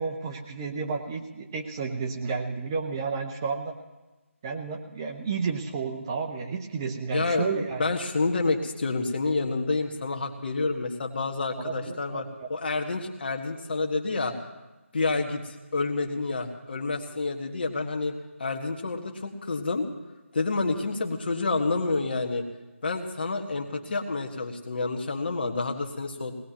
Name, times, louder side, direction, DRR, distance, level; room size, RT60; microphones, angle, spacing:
voice 1, 0.0-3.8 4.4-7.8 11.6-12.5, right 5 dB, 15° right, 2 dB, 0.7 m, -31 dB
voice 2, 7.1-14.3 14.9-18.1 18.4-19.8 20.3-22.5 22.8-26.4, left 3 dB, 45° left, 3 dB, 1.8 m, -29 dB
20.5 x 19.0 x 3.1 m, 1.1 s
figure-of-eight pair, 165°, 7 cm